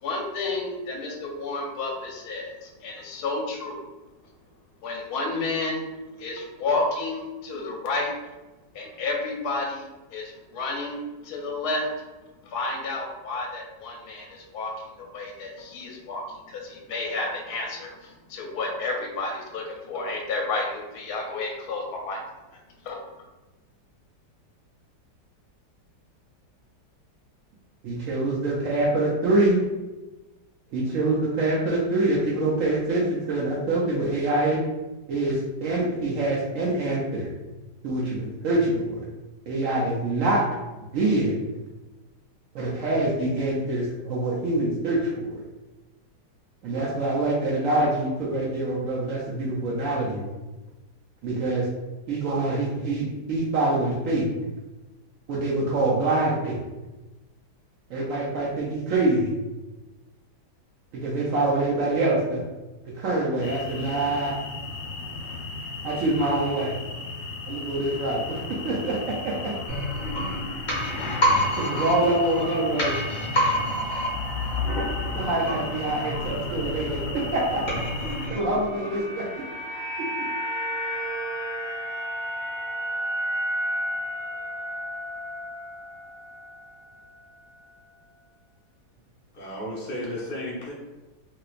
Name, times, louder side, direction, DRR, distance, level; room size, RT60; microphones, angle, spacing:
voice 1, 0.0-3.8 4.8-5.8 6.2-8.1 8.7-11.9 12.4-22.4 22.8-23.0, left 3 dB, 70° left, 0 dB, 1.1 m, -31 dB
voice 2, 27.8-29.6 30.7-34.6 35.1-37.3 37.8-39.0 39.5-40.4 40.9-41.4 42.5-45.4 46.6-50.3 51.2-51.7 52.1-54.3 55.3-56.6 57.9-59.3 60.9-62.4 62.8-64.4 65.8-66.8 67.4-69.5 71.6-73.0 75.1-77.6 78.3-79.4, right 2 dB, 70° right, -4 dB, 0.7 m, -25 dB
sound 1, 63.4-78.3, left 3 dB, 90° left, 1.3 m, -35 dB
sound 2, 69.7-79.4 79.7-79.8, equal, 40° left, 0.7 m, -29 dB
sound 3, 78.4-86.7 87.0-87.1, equal, 15° right, 0.9 m, -32 dB
voice 3, 89.3-90.7, left 1 dB, 15° left, -8 dB, 0.3 m, -33 dB
3.0 x 2.8 x 2.4 m, 1.1 s
omnidirectional pair, 1.9 m